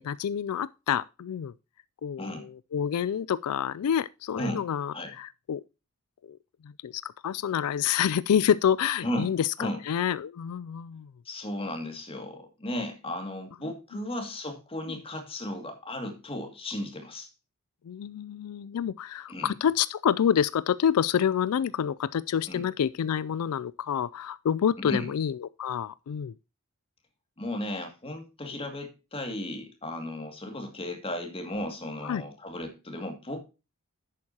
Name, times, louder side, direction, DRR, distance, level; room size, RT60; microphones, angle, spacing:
voice 1, 0.0-1.5 2.0-5.6 6.3-6.4 6.6-11.1 17.9-26.3 32.0-32.2, left 8 dB, 85° left, 0.4 m, -28 dB
voice 2, 11.2-17.3 19.3-19.5 22.5-22.7 24.8-25.1 27.4-33.4, left 1 dB, 25° left, 2.2 m, -35 dB
11.0 x 8.5 x 2.8 m
head